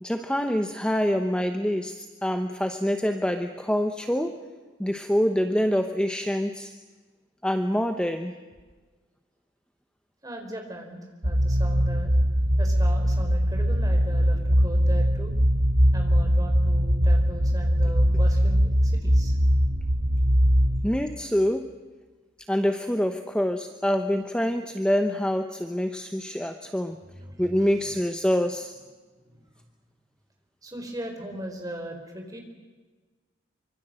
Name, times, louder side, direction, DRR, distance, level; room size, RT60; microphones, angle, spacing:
voice 1, 0.0-4.5 4.8-6.7 7.4-8.3 20.8-21.7 22.5-27.0 27.4-28.7, equal, 5° left, 7 dB, 0.9 m, -26 dB
voice 2, 10.2-12.1 12.6-15.4 15.9-19.4 26.1-26.4 26.6-28.0 29.2-29.5 30.6-32.4, right 1 dB, 20° right, 3 dB, 4.5 m, -39 dB
sound 1, 11.2-20.8, equal, 70° right, 3.4 m, -21 dB
25.0 x 25.0 x 7.7 m, 1.3 s
head